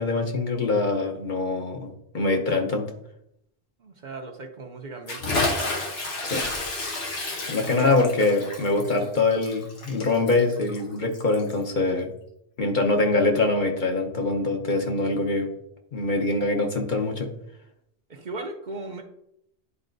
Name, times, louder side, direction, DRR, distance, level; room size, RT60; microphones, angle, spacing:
voice 1, 0.0-2.8 6.2-6.5 7.5-12.1 12.6-15.5 15.9-17.3, left 3 dB, 50° left, 2 dB, 1.1 m, -24 dB
voice 2, 3.8-5.4 7.6-7.9 18.1-19.0, right 3 dB, 50° right, 3 dB, 0.8 m, -37 dB
Bathtub (filling or washing) / Splash splatter, 5.1-11.6, left 2 dB, 85° left, 1.3 m, -31 dB
11.0 x 4.1 x 2.6 m, 0.78 s
omnidirectional pair, 1.0 m